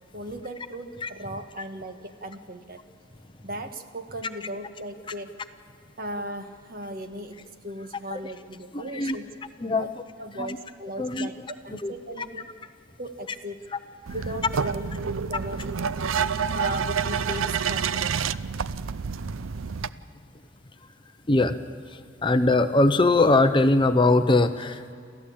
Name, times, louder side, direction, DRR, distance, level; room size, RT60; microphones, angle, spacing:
voice 1, 0.1-2.8 3.4-5.4 6.0-7.4 7.6-9.3 9.6-9.9 10.2-12.5 13.0-13.6 14.1-15.8 16.5-18.2, right 1 dB, 45° right, 6 dB, 1.5 m, -37 dB
voice 2, 8.7-9.2 9.6-9.9 10.4-10.6 11.0-11.3 11.7-12.3 21.3-21.6 21.8-24.9, left 2 dB, 25° left, 9 dB, 0.7 m, -22 dB
sound 1, 14.1-19.9, right 6 dB, 85° right, 0.6 m, -28 dB
28.5 x 14.5 x 8.6 m, 2.3 s
head